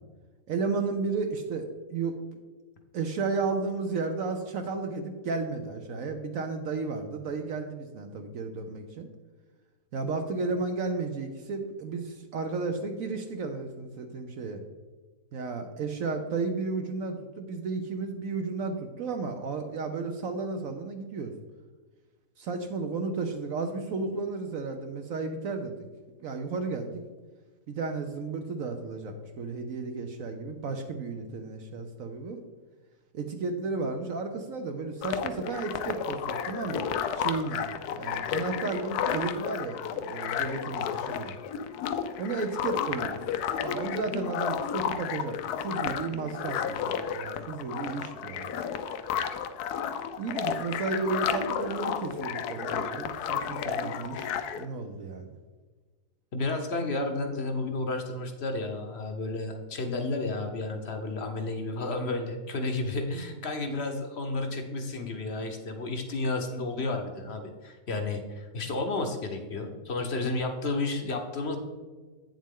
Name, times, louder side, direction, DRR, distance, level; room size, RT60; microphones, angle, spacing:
voice 1, 0.5-2.2 2.9-9.1 9.9-14.6 15.3-21.3 22.4-25.8 26.2-27.0 27.7-32.4 33.1-37.7 38.0-41.3 42.2-43.2 43.6-45.4 45.6-48.7 50.2-55.3, right 4 dB, 65° right, 5 dB, 1.0 m, -33 dB
sound 1, 35.0-54.6, left 8 dB, 75° left, 1.1 m, -32 dB
voice 2, 56.3-71.6, left 2 dB, 50° left, 5 dB, 0.9 m, -32 dB
8.6 x 7.3 x 3.7 m, 1.4 s
omnidirectional pair, 1.7 m